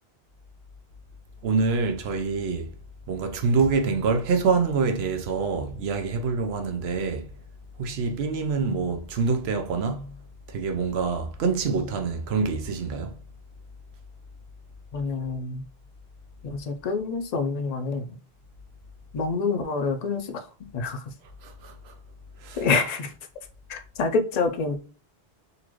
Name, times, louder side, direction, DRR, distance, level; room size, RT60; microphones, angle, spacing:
voice 1, 1.4-2.7 3.1-7.3 7.8-10.1 10.5-13.2 21.4-21.9 22.4-22.7, right 4 dB, 80° right, 0.9 m, -26 dB
voice 2, 14.9-15.6 16.4-18.0 19.1-20.4 20.7-21.0 22.6-23.1 23.7-24.8, left 4 dB, 50° left, 0.5 m, -27 dB
4.1 x 2.5 x 3.0 m
omnidirectional pair, 1.1 m